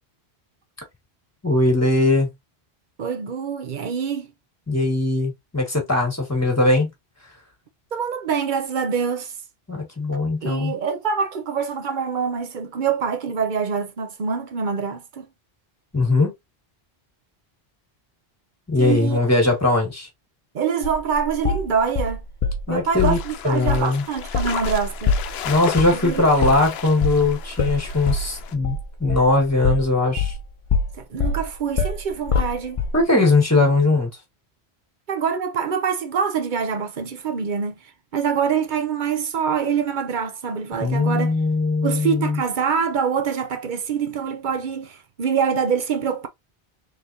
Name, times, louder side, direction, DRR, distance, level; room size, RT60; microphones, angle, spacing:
voice 1, 1.4-2.3 4.7-6.9 9.7-10.7 15.9-16.3 18.7-20.1 22.7-23.2 23.4-24.0 25.4-28.7 29.0-30.3 32.9-34.1 40.8-42.4, left 2 dB, 15° left, 1.6 m, -20 dB
voice 2, 3.0-4.3 7.9-9.3 10.4-15.3 18.8-19.2 20.5-22.2 22.7-25.1 25.9-26.3 30.9-32.8 35.1-37.8 38.1-41.3 41.8-46.3, right 6 dB, 55° right, 0.8 m, -25 dB
sound 1, 20.8-22.6 23.0-23.3 23.7-23.9 24.2-30.4 30.7-33.0, left 4 dB, 40° left, 0.6 m, -24 dB
sound 2, 23.0-28.5, left 9 dB, 75° left, 0.8 m, -35 dB
3.9 x 3.4 x 2.7 m
omnidirectional pair, 1.1 m